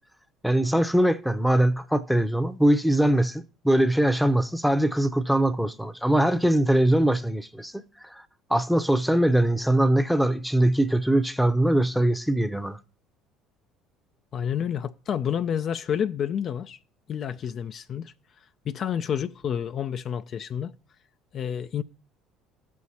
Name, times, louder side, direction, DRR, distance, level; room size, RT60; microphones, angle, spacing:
voice 1, 0.4-8.2 8.5-12.8, right 1 dB, ahead, 0.7 m, -22 dB
voice 2, 14.3-16.8 17.1-18.1 18.7-20.7 21.3-21.8, left 8 dB, 50° left, 0.4 m, -29 dB
15.0 x 6.4 x 2.8 m
hypercardioid pair, 65°, 0 cm